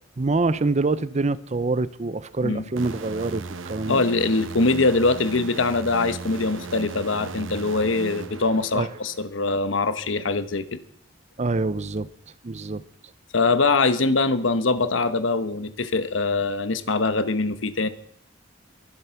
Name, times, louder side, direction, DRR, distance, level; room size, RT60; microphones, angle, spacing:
voice 1, 0.2-3.4 3.7-4.0 8.7-8.9 11.4-12.1 12.4-12.8, right 3 dB, 35° right, 0.6 m, -25 dB
sound 1, 2.8-9.2, right 4 dB, 90° right, 0.9 m, -37 dB
voice 2, 3.9-10.8 13.3-17.9, left 3 dB, 80° left, 1.1 m, -23 dB
23.0 x 7.9 x 5.8 m
head